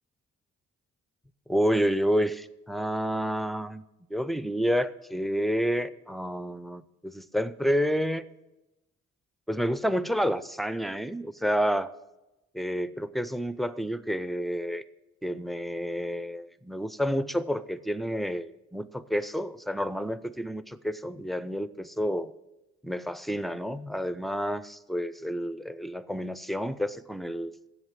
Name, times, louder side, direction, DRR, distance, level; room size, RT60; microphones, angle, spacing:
voice 1, 1.5-3.8 4.1-8.2 9.5-11.9 12.5-14.8 15.2-22.3 22.8-27.5, equal, ahead, 16 dB, 0.4 m, -29 dB
7.9 x 7.2 x 7.3 m, 1.0 s
supercardioid pair, 55°, 32 cm